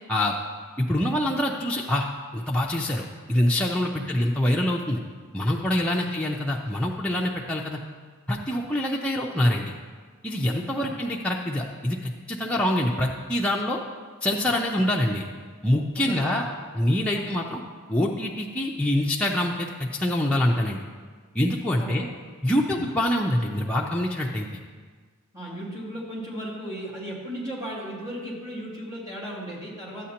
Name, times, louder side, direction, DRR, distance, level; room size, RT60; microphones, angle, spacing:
voice 1, 0.8-2.1 2.3-5.0 5.3-7.8 8.3-9.7 10.2-13.8 14.2-15.3 15.6-16.5 16.7-17.6 17.9-20.8 21.3-22.1 22.4-24.5, left 1 dB, 5° left, -3 dB, 0.4 m, -25 dB
voice 2, 15.9-16.4 17.1-17.3 21.8-22.0 22.7-22.8 25.3-30.1, equal, 15° right, -7 dB, 2.4 m, -36 dB
12.5 x 8.3 x 2.9 m, 1.5 s
head